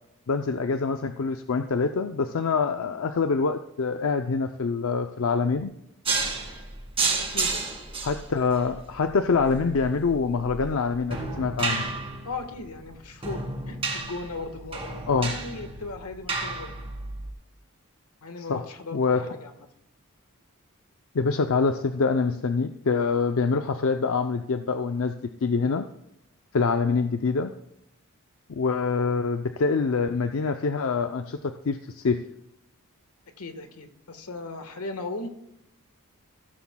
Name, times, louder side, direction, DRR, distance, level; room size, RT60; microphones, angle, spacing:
voice 1, 0.3-5.7 8.0-11.9 15.1-15.3 18.5-18.6 18.9-19.3 21.1-25.1 25.4-25.8 26.5-27.5 28.5-32.2, left 4 dB, 65° left, 7 dB, 0.5 m, -25 dB
sound 1, 6.0-17.3, right 3 dB, 25° right, 2.0 m, -32 dB
voice 2, 7.2-7.8 12.2-16.7 18.2-19.7 33.4-35.3, left 3 dB, 90° left, 7 dB, 1.5 m, -37 dB
16.0 x 13.0 x 2.3 m, 0.80 s
head